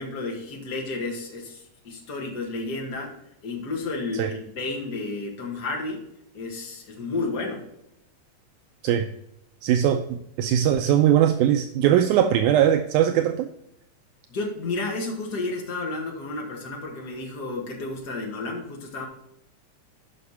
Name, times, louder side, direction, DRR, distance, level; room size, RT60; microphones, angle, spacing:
voice 1, 0.0-3.2 3.4-6.0 6.3-7.7 14.3-19.1, left 3 dB, 35° left, 0 dB, 1.9 m, -31 dB
voice 2, 9.6-13.5, right 10 dB, 80° right, 7 dB, 2.0 m, -20 dB
11.0 x 5.7 x 4.2 m, 0.81 s
omnidirectional pair, 3.7 m